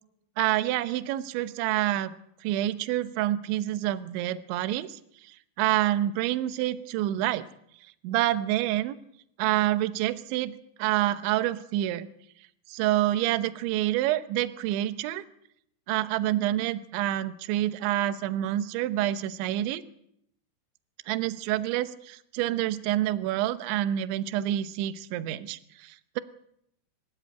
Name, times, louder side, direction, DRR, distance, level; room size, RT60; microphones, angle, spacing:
voice 1, 0.4-2.1 2.4-5.0 5.6-7.5 8.0-9.0 9.4-10.5 10.8-12.1 12.7-15.2 15.9-19.8 21.1-26.2, right 14 dB, 75° right, 13 dB, 3.1 m, -27 dB
25.5 x 13.0 x 9.0 m, 0.72 s
omnidirectional pair, 5.9 m